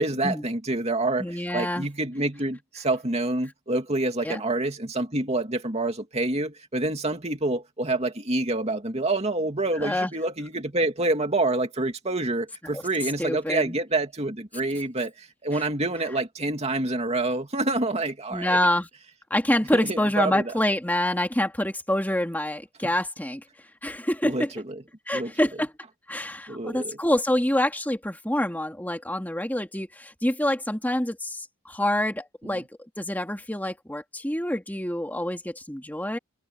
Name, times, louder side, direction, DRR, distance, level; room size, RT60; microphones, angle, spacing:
voice 1, 0.0-18.6 19.7-20.5 24.2-24.7 25.1-25.3 26.5-27.0 32.4-32.5, right 2 dB, 30° right, 2.6 m, -27 dB
voice 2, 1.2-1.9 4.2-4.4 9.8-10.1 12.7-12.8 13.2-13.8 15.5-15.6 18.3-18.9 19.3-23.4 23.8-24.5 25.1-25.7 26.1-32.7 33.0-36.2, left 1 dB, 10° left, 2.6 m, -26 dB
head